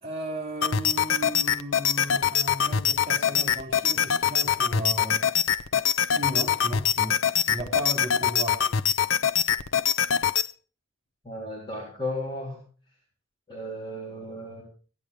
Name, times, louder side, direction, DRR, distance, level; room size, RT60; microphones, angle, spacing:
voice 1, 0.0-5.2 6.1-7.1 7.5-8.6, right 1 dB, 30° right, 4 dB, 3.2 m, -35 dB
sound 1, 0.6-10.5, left 8 dB, 80° left, 0.6 m, -24 dB
voice 2, 11.2-12.6 13.5-14.6, left 1 dB, 25° left, -4 dB, 3.8 m, -34 dB
16.5 x 11.0 x 5.1 m, 0.39 s
head